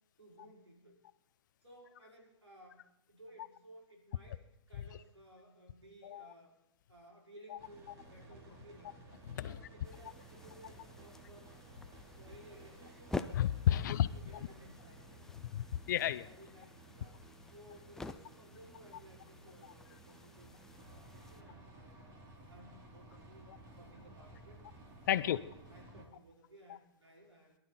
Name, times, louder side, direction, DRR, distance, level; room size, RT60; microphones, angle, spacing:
voice 1, 0.2-1.0 1.6-2.8 3.1-4.4 4.7-6.6 6.9-8.9 9.3-11.5 12.0-13.2 13.7-15.2 16.2-17.2 17.5-22.1 22.4-23.5 23.8-24.6 25.1-27.6, equal, 80° right, -1 dB, 5.2 m, -58 dB
sound 1, 7.6-26.0, right 2 dB, 25° right, 2.6 m, -56 dB
sound 2, 9.8-21.4, left 2 dB, 5° left, 0.4 m, -49 dB
voice 2, 13.3-14.1 15.5-16.2 25.1-25.4, left 11 dB, 45° left, 15 dB, 0.7 m, -31 dB
22.5 x 12.0 x 4.1 m, 0.86 s
figure-of-eight pair, 125°, 14 cm